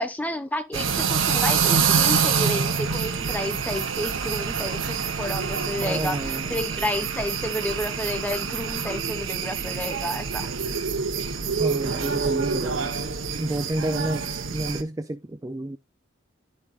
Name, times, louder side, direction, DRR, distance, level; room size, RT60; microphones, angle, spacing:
voice 1, 0.0-10.5, left 1 dB, 10° left, 0.7 m, -31 dB
sound 1, 0.7-14.8, right 6 dB, 85° right, 1.0 m, -26 dB
voice 2, 5.6-6.6 11.6-12.9 13.4-15.8, right 1 dB, 15° right, 0.4 m, -30 dB
11.0 x 5.5 x 2.4 m
head